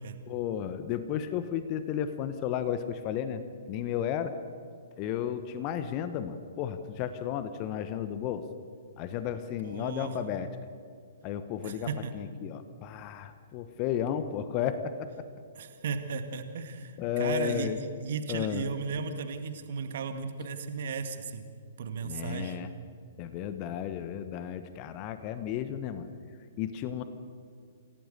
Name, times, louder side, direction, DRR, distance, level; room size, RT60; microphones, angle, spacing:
voice 1, 0.3-3.4 3.7-4.4 5.0-8.4 9.0-10.5 11.2-11.9 12.1-15.1 17.0-17.8 18.3-18.7 22.0-22.7 23.2-26.1 26.6-27.0, left 9 dB, 30° left, 11 dB, 1.2 m, -33 dB
voice 2, 9.6-10.2 11.6-12.1 15.6-17.7 18.0-21.4 21.8-22.6, right 5 dB, 50° right, 7 dB, 2.1 m, -35 dB
27.5 x 17.0 x 6.8 m, 2.3 s
figure-of-eight pair, 115°, 0 cm